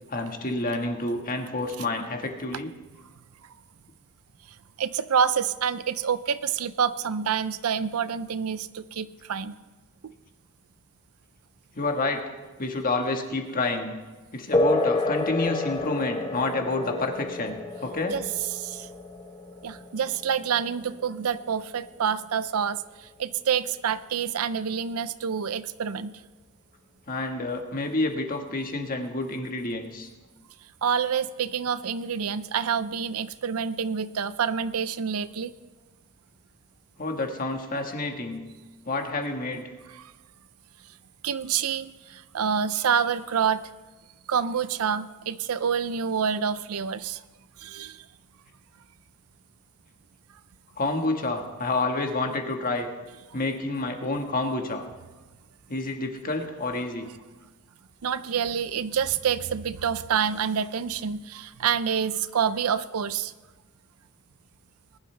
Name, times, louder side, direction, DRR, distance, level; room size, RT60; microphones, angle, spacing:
voice 1, 0.1-2.7 11.7-12.2 12.6-14.0 14.3-18.2 27.1-30.1 37.0-38.4 38.9-39.6 50.8-52.9 53.3-54.8 55.7-57.1, left 2 dB, 40° left, 3 dB, 1.5 m, -29 dB
voice 2, 4.8-9.6 10.0-10.1 18.1-18.2 18.5-18.9 19.6-26.2 30.8-35.5 40.0-40.1 41.2-43.6 44.3-47.2 47.6-48.0 58.0-63.3, right 7 dB, 80° right, 15 dB, 0.5 m, -27 dB
sound 1, 14.5-22.5, left 2 dB, 25° left, 0.9 m, -30 dB
20.5 x 11.5 x 3.3 m, 1.2 s
head